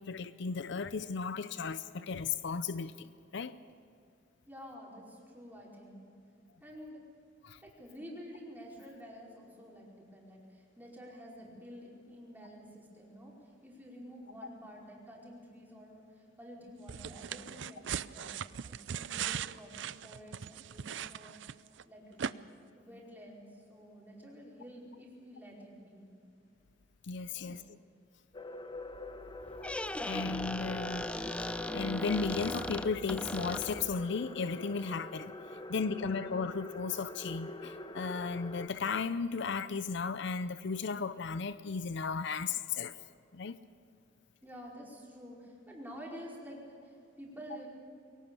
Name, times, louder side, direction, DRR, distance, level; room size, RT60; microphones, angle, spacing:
voice 1, 0.0-3.6 7.4-7.6 27.0-27.6 30.1-31.1 31.4-43.0 43.3-43.6, left 5 dB, 65° left, 0.6 m, -35 dB
voice 2, 4.5-6.1 6.6-7.0 7.6-22.3 22.8-26.1 27.3-27.7 35.5-35.7 44.4-47.7, equal, 10° right, 4.9 m, -50 dB
sound 1, 16.9-21.8 22.2-22.3, right 8 dB, 70° right, 0.5 m, -39 dB
sound 2, 28.3-38.7, left 2 dB, 25° left, 1.1 m, -45 dB
Squeak, 29.4-34.0, left 1 dB, 5° left, 0.5 m, -38 dB
22.5 x 18.0 x 7.1 m
head